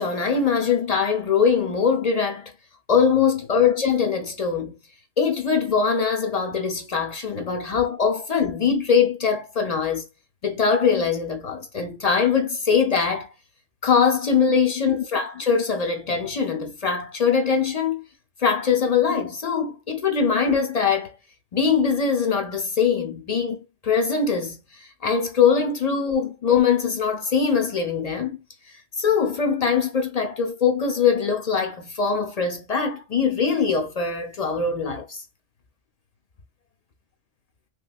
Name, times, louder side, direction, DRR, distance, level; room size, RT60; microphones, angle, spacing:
voice 1, 0.0-2.5 2.9-4.8 5.2-10.0 10.4-13.3 13.8-18.0 18.4-21.1 21.5-23.6 23.8-28.4 28.7-35.2, left 6 dB, 60° left, 0.4 m, -22 dB
3.0 x 3.0 x 2.3 m
omnidirectional pair, 1.2 m